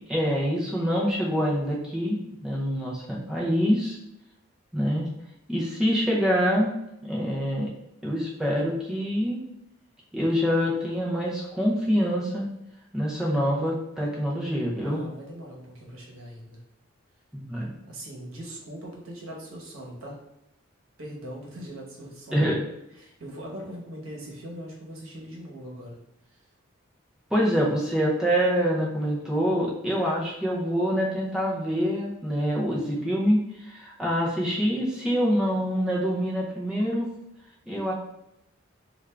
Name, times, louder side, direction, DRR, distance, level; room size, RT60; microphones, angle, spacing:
voice 1, 0.1-2.2 2.4-4.0 4.7-5.0 5.5-6.7 7.0-7.7 8.0-9.4 10.1-12.5 12.9-15.0 17.3-17.8 22.3-22.6 27.3-37.1 37.7-37.9, equal, 5° right, -6 dB, 0.5 m, -25 dB
voice 2, 14.8-16.6 17.9-20.2 21.0-22.5 23.0-26.0 26.3-26.4, right 1 dB, 80° right, -1 dB, 1.0 m, -41 dB
3.4 x 2.4 x 3.3 m, 0.83 s
head